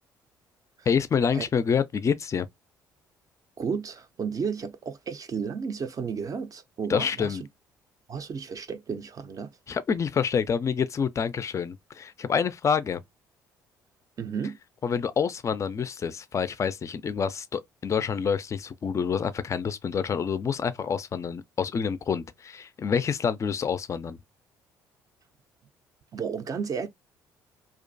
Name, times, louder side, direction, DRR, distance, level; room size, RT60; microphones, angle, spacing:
voice 1, 0.9-2.5 6.9-7.4 9.7-13.0 14.8-24.2, left 6 dB, 30° left, 0.3 m, -27 dB
voice 2, 3.6-7.4 8.1-9.5 14.2-14.6 26.1-26.9, right 6 dB, 35° right, 0.4 m, -32 dB
2.4 x 2.2 x 2.5 m
figure-of-eight pair, 50°, 10 cm